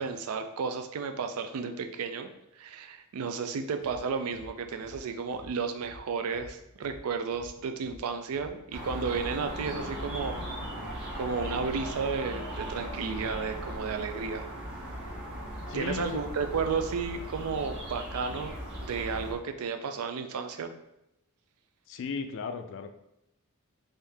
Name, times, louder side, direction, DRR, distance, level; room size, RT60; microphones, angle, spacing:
voice 1, 0.0-2.3 2.6-10.4 11.1-14.5 15.7-20.7, right 5 dB, 75° right, 7 dB, 0.4 m, -33 dB
sound 1, 3.8-4.0 4.3-8.0 8.3-11.7, left 1 dB, 90° left, 0.8 m, -50 dB
sound 2, 8.7-19.3, right 1 dB, 50° right, 1.1 m, -38 dB
voice 2, 15.7-16.2 21.9-22.9, left 5 dB, 60° left, 7 dB, 0.4 m, -36 dB
3.5 x 2.7 x 3.3 m, 0.83 s
head